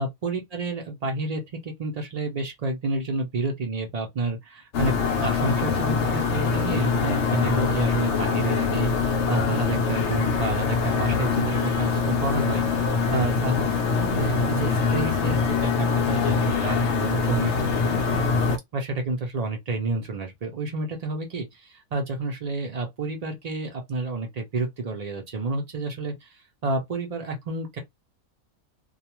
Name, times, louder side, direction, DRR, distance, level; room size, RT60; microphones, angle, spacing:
voice 1, 0.0-4.9 5.2-13.7 14.1-18.4 18.7-27.8, right 2 dB, 90° right, 0.3 m, -30 dB
sound 1, 4.7-18.6, left 5 dB, 65° left, 0.8 m, -24 dB
2.4 x 2.2 x 2.9 m
omnidirectional pair, 1.5 m